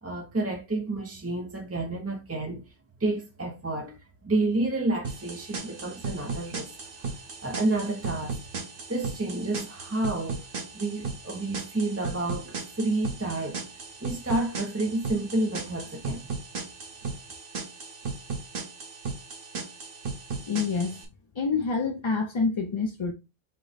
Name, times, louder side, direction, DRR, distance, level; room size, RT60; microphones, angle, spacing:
voice 1, 0.0-2.7 3.0-8.5 8.9-10.4 10.7-16.3, right 2 dB, 20° right, 0.4 m, -30 dB
sound 1, 5.0-21.0, right 4 dB, 60° right, 1.1 m, -36 dB
voice 2, 20.5-20.9 21.4-23.1, left 4 dB, 40° left, 0.4 m, -27 dB
5.4 x 2.1 x 4.0 m
omnidirectional pair, 1.1 m